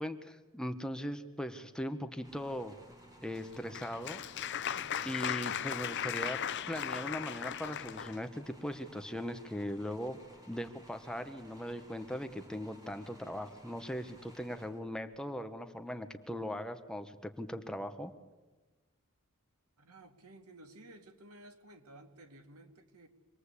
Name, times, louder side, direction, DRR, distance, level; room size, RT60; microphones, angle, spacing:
voice 1, 0.0-2.8 3.2-4.2 5.0-10.2 10.5-18.1, equal, 5° left, 7 dB, 1.1 m, -39 dB
sound 1, 2.2-15.2, right 1 dB, 15° right, 3.6 m, -57 dB
Applause, 3.3-8.2, left 9 dB, 50° left, 0.7 m, -37 dB
voice 2, 19.8-23.1, right 1 dB, 90° right, 6 dB, 2.4 m, -55 dB
25.5 x 20.5 x 8.3 m, 1.2 s
head